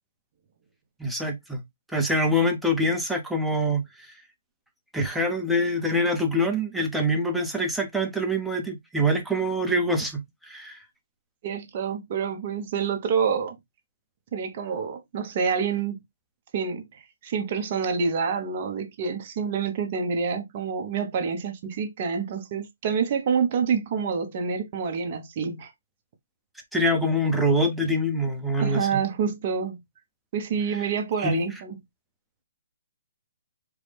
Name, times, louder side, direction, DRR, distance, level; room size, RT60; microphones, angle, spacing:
voice 1, 1.0-1.6 1.9-3.9 4.9-10.8 26.7-29.0 31.2-31.4, equal, ahead, 0.6 m, -25 dB
voice 2, 11.4-13.6 14.3-16.0 16.5-25.7 28.6-29.8 30.3-31.8, right 6 dB, 35° right, 0.7 m, -27 dB
4.6 x 2.1 x 3.3 m
hypercardioid pair, 160°, 0 cm